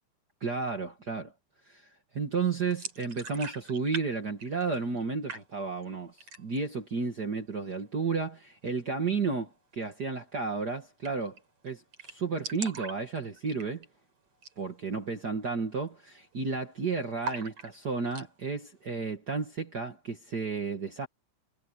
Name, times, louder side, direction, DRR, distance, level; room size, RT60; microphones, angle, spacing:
voice 1, 0.4-1.3 1.7-1.8 2.1-11.4 11.6-13.9 14.6-21.1, right 4 dB, 85° right, 0.9 m, -32 dB
sound 1, 2.7-4.1 4.3-5.0 5.3-5.8 6.2-6.7 7.0-7.1 7.5-8.1 9.8-10.0 10.3-10.4 10.6-10.7 11.0-11.4 11.7-11.8 11.9-14.0 14.3-14.6 14.9-15.0 15.6-16.7 17.2-18.3, right 4 dB, 35° right, 4.7 m, -41 dB
omnidirectional pair, 5.0 m